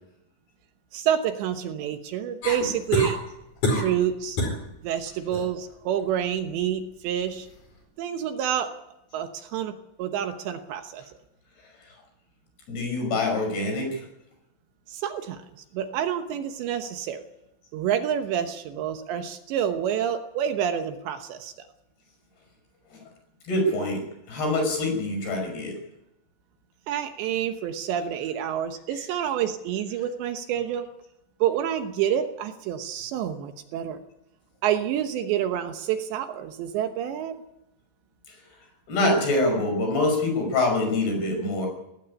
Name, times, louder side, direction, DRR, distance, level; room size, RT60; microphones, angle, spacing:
voice 1, 0.9-3.2 3.7-4.4 4.8-7.5 8.0-8.7 9.1-11.1 14.9-17.2 17.7-21.5 26.9-30.9 31.4-34.0 34.6-37.4, right 9 dB, 75° right, 7 dB, 3.2 m, -28 dB
sound 1, 2.4-3.2 3.6-4.0 4.4-4.6 5.1-5.5 7.3-7.4, left 1 dB, 40° left, 5.7 m, -26 dB
voice 2, 12.7-14.0 23.4-25.8 38.9-41.7, left 2 dB, 55° left, 3 dB, 7.6 m, -25 dB
17.5 x 16.0 x 9.9 m, 0.88 s
omnidirectional pair, 5.5 m